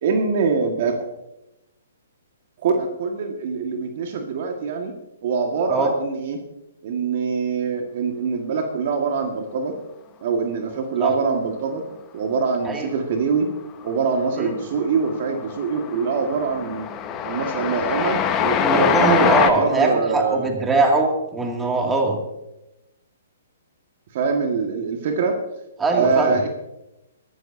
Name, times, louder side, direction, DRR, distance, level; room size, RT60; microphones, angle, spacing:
voice 1, 0.0-1.0 2.6-4.9 5.2-6.4 6.8-9.8 10.2-11.8 12.1-13.5 13.8-16.9 17.2-20.5 24.1-25.4 25.9-26.5, right 5 dB, 50° right, 3 dB, 1.8 m, -24 dB
Train, 13.8-14.3 14.6-19.5, left 8 dB, 25° left, 1.2 m, -23 dB
voice 2, 18.6-22.2 25.8-26.3, right 3 dB, 10° right, 1 dB, 2.4 m, -21 dB
22.5 x 12.5 x 2.8 m, 0.92 s
figure-of-eight pair, 125°, 0 cm